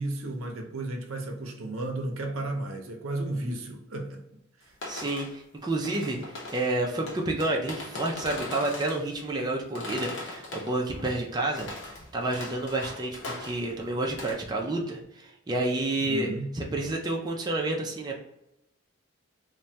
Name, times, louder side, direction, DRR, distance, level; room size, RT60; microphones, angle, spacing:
voice 1, 0.0-4.2 16.0-16.5, right 2 dB, 90° right, 0.6 m, -33 dB
sound 1, 4.7-5.3 5.7-6.7 7.0-9.0 9.7-11.2 11.5-13.8 14.0-14.3, left 2 dB, 65° left, 0.8 m, -40 dB
voice 2, 4.9-11.7 12.1-16.3 16.5-18.2, right 2 dB, 20° right, 0.4 m, -30 dB
3.2 x 2.2 x 2.6 m
head